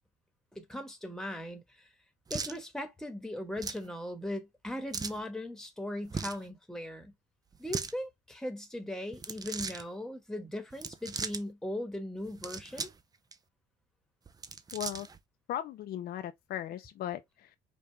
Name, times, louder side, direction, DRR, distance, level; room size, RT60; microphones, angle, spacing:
voice 1, 0.5-1.6 2.3-7.1 7.6-12.9, left 1 dB, 5° left, 1.3 m, -39 dB
sound 1, 2.3-2.6 3.6-3.9 4.9-5.2 6.1-6.4 7.5-7.9 9.1-9.8 10.7-11.4 12.2-13.0 13.3-13.4 14.3-15.2, right 5 dB, 20° right, 0.6 m, -38 dB
voice 2, 14.7-15.1 15.5-17.6, left 11 dB, 65° left, 0.6 m, -37 dB
5.3 x 2.5 x 3.3 m
cardioid pair, 110°, 17 cm